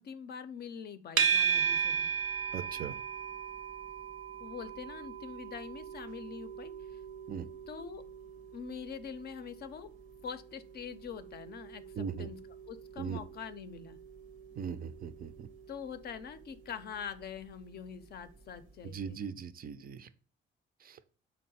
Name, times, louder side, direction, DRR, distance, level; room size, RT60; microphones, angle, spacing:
voice 1, 0.0-2.1 4.4-7.0 7.7-8.0 8.5-9.9 10.2-12.4 12.6-14.0 15.7-19.2, left 7 dB, 55° left, 11 dB, 0.5 m, -44 dB
sound 1, 1.2-18.4, right 6 dB, 85° right, 0.7 m, -38 dB
voice 2, 2.5-3.0 7.3-7.5 12.0-12.3 13.0-13.2 14.6-15.5 18.8-20.1 20.8-21.0, right 7 dB, 50° right, 12 dB, 0.4 m, -39 dB
3.8 x 2.1 x 4.1 m, 0.42 s
cardioid pair, 90°, 20 cm